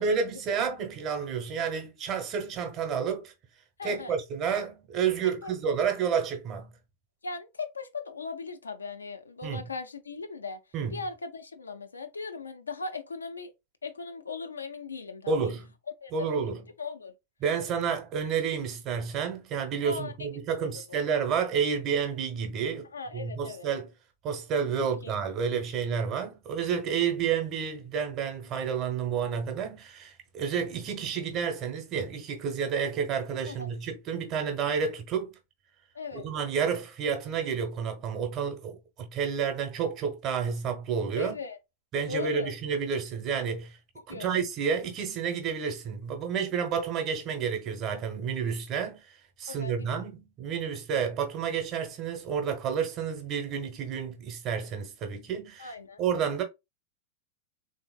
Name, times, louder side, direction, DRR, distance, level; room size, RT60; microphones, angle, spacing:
voice 1, 0.0-3.3 3.8-6.7 9.4-9.6 10.7-11.0 15.3-15.7 16.1-16.6 17.4-23.9 24.2-35.3 36.1-41.4 41.9-43.8 44.1-56.4, right 6 dB, 35° right, 0.9 m, -30 dB
voice 2, 3.8-4.1 5.2-5.8 7.2-10.6 10.9-13.5 13.8-15.5 16.0-16.5 16.8-17.1 19.8-21.0 22.9-23.7 24.8-25.1 33.5-33.7 35.9-36.2 41.1-41.6 42.1-42.5 44.0-44.4 49.5-50.1 55.6-56.0, left 4 dB, 75° left, 0.5 m, -39 dB
3.7 x 2.8 x 2.3 m
figure-of-eight pair, 90°, 0 cm